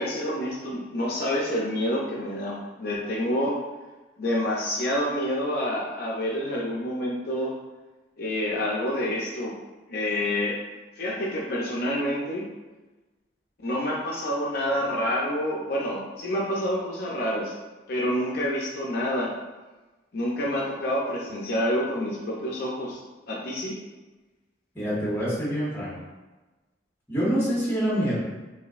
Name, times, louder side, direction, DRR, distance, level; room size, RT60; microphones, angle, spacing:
voice 1, 0.0-3.6 4.2-7.5 8.2-9.5 9.9-10.6 11.0-12.5 13.6-17.6 17.9-19.3 20.1-23.0 23.3-23.8, equal, 55° left, -4 dB, 0.5 m, -28 dB
voice 2, 24.7-25.9 27.1-28.2, equal, 15° left, -7 dB, 1.3 m, -26 dB
4.9 x 2.7 x 2.4 m, 1.2 s
head